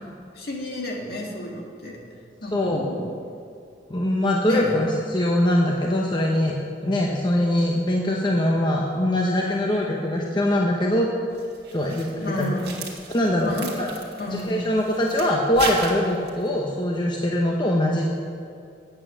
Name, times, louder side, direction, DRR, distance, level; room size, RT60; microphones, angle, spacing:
voice 1, 0.3-2.0 2.4-3.1 4.5-4.7 12.2-12.7 13.4-13.8 14.2-14.7, left 1 dB, 55° left, -1 dB, 1.9 m, -31 dB
voice 2, 2.4-2.8 3.9-6.6 6.8-11.1 11.7-12.5 13.1-13.9 14.3-18.1, left 1 dB, 25° left, -1 dB, 0.8 m, -22 dB
sound 1, 11.3-16.5, right 4 dB, 60° right, 1.9 m, -36 dB
9.1 x 8.6 x 6.7 m, 2.5 s
head